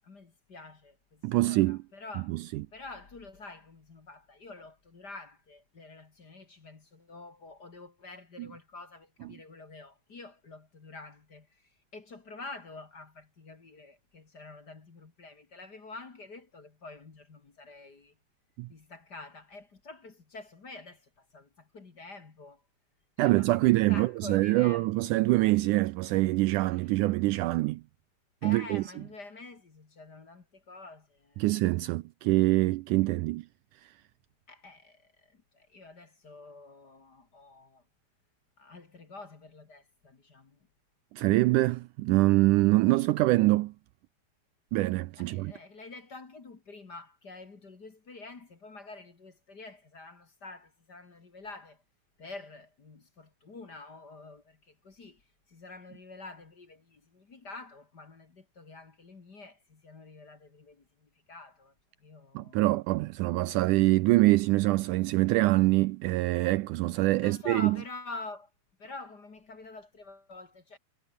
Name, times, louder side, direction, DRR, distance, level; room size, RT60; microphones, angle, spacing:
voice 1, 0.0-2.4 2.7-18.1 18.7-22.6 23.2-24.9 26.7-26.8 28.4-31.5 34.5-37.8 38.6-40.6 45.2-51.8 52.2-55.2 55.5-61.7 62.0-62.6 67.2-68.5 68.8-70.8, left 3 dB, 30° left, 2.5 m, -47 dB
voice 2, 1.2-1.8 2.3-2.6 8.4-8.5 18.6-18.7 23.2-27.8 28.4-28.8 31.4-33.5 41.1-43.7 44.7-45.5 62.4-67.8, right 19 dB, 80° right, 1.9 m, -25 dB
omnidirectional pair, 3.9 m